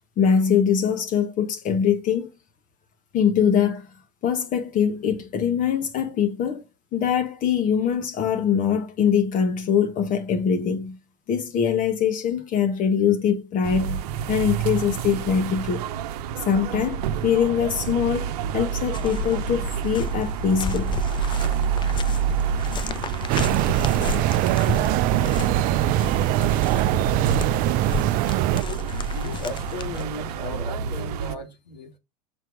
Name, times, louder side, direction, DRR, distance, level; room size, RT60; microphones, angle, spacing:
voice 1, 0.2-2.3 3.1-3.9 4.2-6.7 6.9-11.0 11.3-14.0 14.3-15.9 16.5-21.0, left 7 dB, 40° left, 1.2 m, -23 dB
sound 1, 13.6-31.4, right 8 dB, 65° right, 0.8 m, -29 dB
sound 2, 18.9-30.0, left 4 dB, 20° left, 0.6 m, -32 dB
sound 3, 23.3-28.6, right 16 dB, 45° right, 0.4 m, -22 dB
voice 2, 29.1-32.0, left 2 dB, 85° left, 2.1 m, -36 dB
6.5 x 4.6 x 4.8 m
hypercardioid pair, 85°, 21 cm